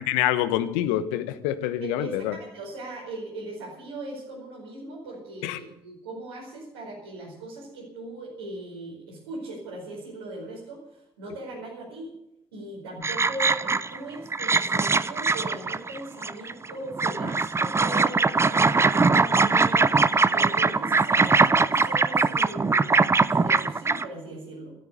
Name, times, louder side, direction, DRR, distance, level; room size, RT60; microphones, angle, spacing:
voice 1, 0.0-2.3 5.4-5.6, left 12 dB, 70° left, 12 dB, 1.2 m, -26 dB
voice 2, 1.8-12.1 12.5-20.0 20.3-24.7, right 2 dB, 80° right, -6 dB, 5.0 m, -39 dB
sound 1, 13.0-14.0 14.3-16.7 17.0-24.0, right 4 dB, 20° right, 0.8 m, -22 dB
13.5 x 13.0 x 6.7 m, 0.82 s
figure-of-eight pair, 50°, 12 cm